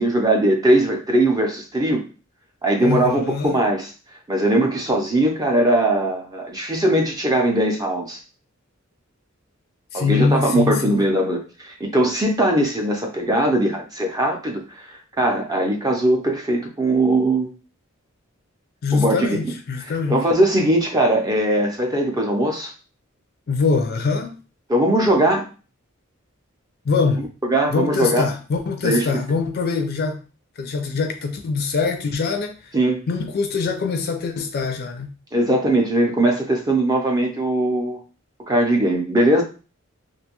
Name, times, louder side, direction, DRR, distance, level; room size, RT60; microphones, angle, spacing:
voice 1, 0.0-2.0 2.6-3.9 4.3-8.2 9.9-17.5 18.9-19.4 19.8-22.7 24.7-25.5 27.2-28.2 28.8-29.1 32.7-33.0 35.3-38.0 38.5-39.4, right 1 dB, 20° right, 0.4 m, -20 dB
voice 2, 2.8-3.6 9.9-11.0 18.8-20.2 23.5-24.4 26.9-27.2 27.7-30.2 30.6-32.7 33.1-35.1, left 4 dB, 50° left, 0.4 m, -23 dB
2.5 x 2.2 x 2.8 m
head